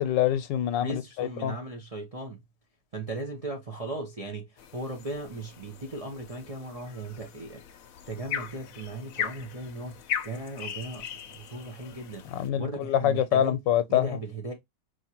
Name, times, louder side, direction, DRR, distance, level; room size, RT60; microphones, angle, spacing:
voice 1, 0.0-1.5 12.3-14.1, left 10 dB, 85° left, 1.3 m, -25 dB
voice 2, 0.8-2.4 2.9-7.6 8.1-13.6 13.9-14.5, right 2 dB, 35° right, 0.5 m, -37 dB
sound 1, 4.6-12.5, left 9 dB, 65° left, 0.9 m, -39 dB
4.7 x 2.8 x 2.8 m
omnidirectional pair, 1.9 m